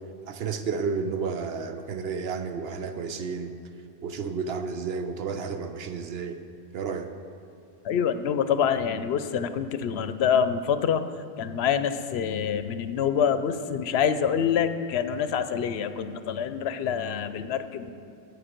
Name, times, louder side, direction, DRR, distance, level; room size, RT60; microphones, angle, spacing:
voice 1, 0.3-3.6 4.0-6.4 6.7-7.1, right 5 dB, 75° right, 8 dB, 0.9 m, -31 dB
voice 2, 7.8-11.0 11.4-17.9, left 7 dB, 80° left, 11 dB, 0.8 m, -26 dB
14.0 x 7.9 x 4.4 m, 2.5 s
omnidirectional pair, 1.1 m